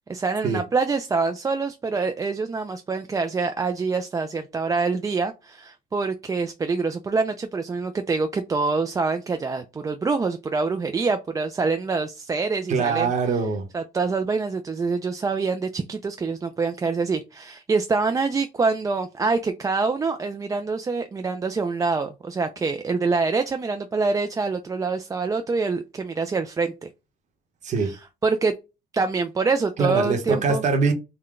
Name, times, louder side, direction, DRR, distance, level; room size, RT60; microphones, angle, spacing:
voice 1, 0.1-13.1 13.7-26.9 27.8-28.5 28.9-30.6, right 4 dB, 20° right, 0.3 m, -25 dB
voice 2, 12.7-13.7 27.6-27.9 29.8-30.9, right 4 dB, 45° right, 0.9 m, -23 dB
3.7 x 2.2 x 3.6 m
cardioid pair, 110°, 17 cm